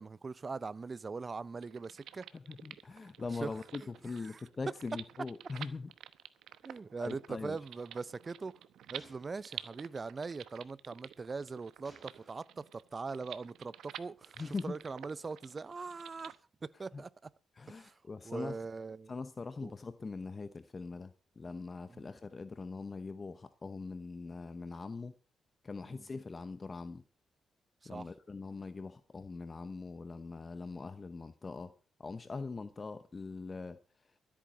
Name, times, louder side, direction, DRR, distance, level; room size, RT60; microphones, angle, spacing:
voice 1, 0.0-2.3 3.4-3.5 4.2-4.4 6.6-8.6 8.9-16.4 16.6-17.3 17.7-17.9 18.2-19.1 19.6-19.7 21.9-22.1 25.9-26.0 27.8-28.1, right 4 dB, 30° right, 0.6 m, -41 dB
sound 1, 1.6-16.4, right 10 dB, 85° right, 0.9 m, -50 dB
voice 2, 2.3-5.9 6.7-7.6 14.4-14.8 16.9-17.0 17.6-18.6 19.1-25.1 25.6-27.0 27.9-31.7 32.0-33.8, left 4 dB, 30° left, 0.8 m, -42 dB
Gunshot gunfire, 9.0-10.3 11.8-12.6 13.4-13.8 14.4-15.2, right 1 dB, 10° right, 5.2 m, -62 dB
13.5 x 8.7 x 6.3 m
cardioid pair, 100°, 0 cm